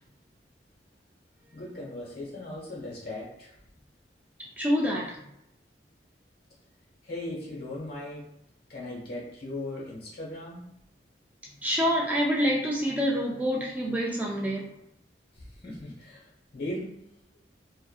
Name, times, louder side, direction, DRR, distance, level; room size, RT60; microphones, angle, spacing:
voice 1, 1.5-3.6 7.0-8.3 8.7-10.7 15.3-16.9, left 1 dB, 60° left, -4 dB, 1.1 m, -38 dB
voice 2, 4.6-5.2 11.6-14.7, equal, 10° right, -3 dB, 0.3 m, -26 dB
2.6 x 2.4 x 2.3 m, 0.79 s
head